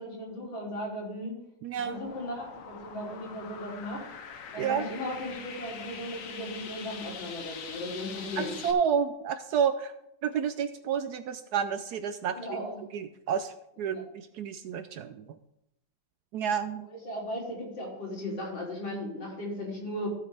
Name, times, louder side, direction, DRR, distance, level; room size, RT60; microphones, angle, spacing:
voice 1, 0.0-1.3 1.8-4.0 4.5-8.6 12.3-12.8 13.9-14.0 17.0-20.1, left 1 dB, 85° left, -4 dB, 4.1 m, -36 dB
voice 2, 1.6-2.0 4.6-4.9 8.4-9.9 10.2-12.4 12.9-15.2 16.3-16.9, right 7 dB, 75° right, 10 dB, 1.0 m, -30 dB
sound 1, 1.8-8.7, left 6 dB, 55° left, 1.1 m, -43 dB
15.5 x 6.8 x 3.4 m, 0.80 s
omnidirectional pair, 2.0 m